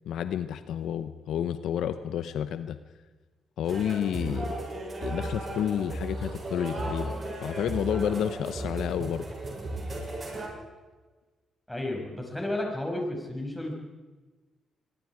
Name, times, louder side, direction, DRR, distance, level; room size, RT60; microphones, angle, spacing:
voice 1, 0.1-2.8 3.6-4.5 5.0-7.1 7.4-9.2, left 9 dB, 75° left, 11 dB, 0.9 m, -30 dB
sound 1, 3.6-10.5, right 2 dB, 35° right, 7.5 m, -35 dB
voice 2, 11.7-13.7, left 1 dB, 5° left, 0 dB, 6.5 m, -32 dB
25.0 x 21.5 x 5.0 m, 1.3 s
cardioid pair, 90°, 0 cm